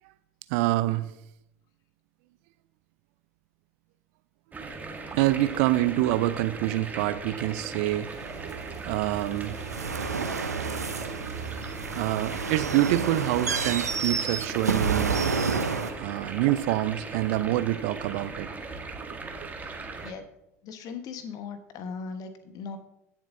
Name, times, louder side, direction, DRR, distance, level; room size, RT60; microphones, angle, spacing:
voice 1, 0.5-1.1 5.1-8.1 8.4-9.6 11.9-15.2 16.0-18.5, right 15 dB, 55° right, 14 dB, 0.6 m, -26 dB
sound 1, 4.5-20.1, right 3 dB, 20° right, 1.4 m, -39 dB
sound 2, 8.1-15.9, right 5 dB, 85° right, 0.8 m, -30 dB
voice 2, 20.6-22.8, left 5 dB, 45° left, 9 dB, 1.2 m, -38 dB
16.5 x 7.3 x 2.6 m, 0.82 s
figure-of-eight pair, 75°, 9 cm